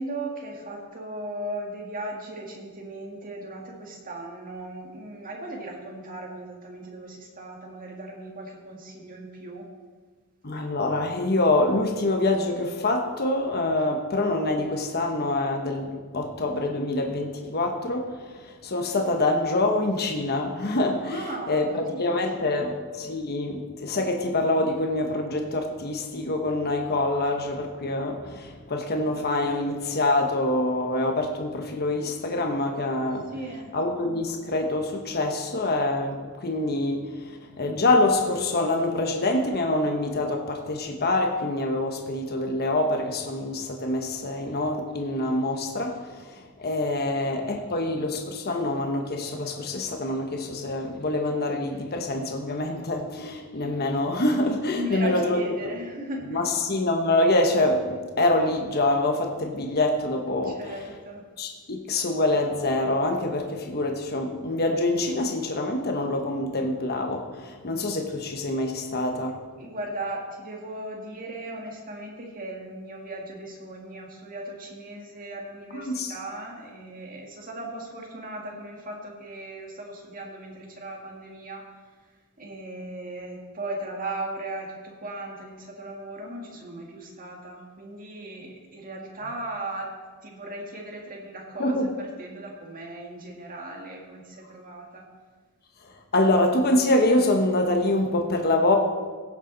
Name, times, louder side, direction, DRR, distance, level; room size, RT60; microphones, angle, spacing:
voice 1, 0.0-9.7 21.0-22.1 22.5-22.7 33.3-33.7 54.7-56.4 60.4-61.2 69.6-81.6 82.4-89.9 90.2-95.0, right 1 dB, 40° right, 0 dB, 2.0 m, -37 dB
voice 2, 10.4-21.2 21.5-33.2 33.7-55.7 56.3-60.6 61.4-69.3 75.7-76.1 91.6-91.9 96.1-98.8, left 2 dB, 45° left, 3 dB, 1.1 m, -25 dB
16.5 x 7.3 x 4.0 m, 1.4 s
head